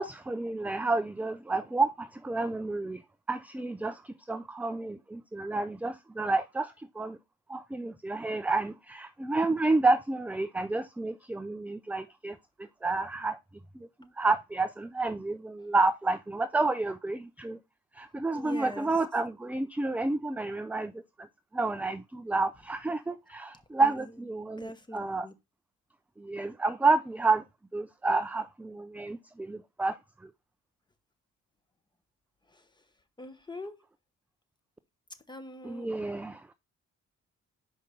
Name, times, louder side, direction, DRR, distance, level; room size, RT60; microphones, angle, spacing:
voice 1, 0.0-3.0 3.3-7.2 7.5-12.4 12.8-13.4 13.7-13.9 14.2-17.6 18.0-21.0 21.5-25.3 26.2-27.4 27.7-30.0 30.2-30.3 35.6-36.5, right 3 dB, 5° right, 0.3 m, -30 dB
voice 2, 18.3-18.9 23.8-24.1 24.6-25.3 32.5-32.7 33.2-33.8 35.3-35.9, left 1 dB, 15° left, 1.1 m, -43 dB
5.2 x 5.1 x 4.2 m
cardioid pair, 90°, 30 cm